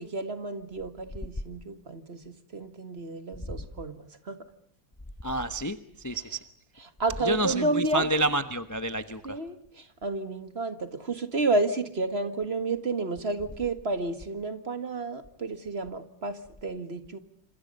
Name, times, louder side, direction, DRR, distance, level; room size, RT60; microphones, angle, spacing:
voice 1, 0.0-4.4 6.1-6.3 6.8-8.1 9.2-17.2, right 2 dB, 35° right, 9 dB, 1.7 m, -31 dB
voice 2, 5.2-6.4 7.2-9.4, right 1 dB, 20° left, 10 dB, 0.5 m, -29 dB
28.5 x 26.5 x 5.4 m, 0.64 s
omnidirectional pair, 2.2 m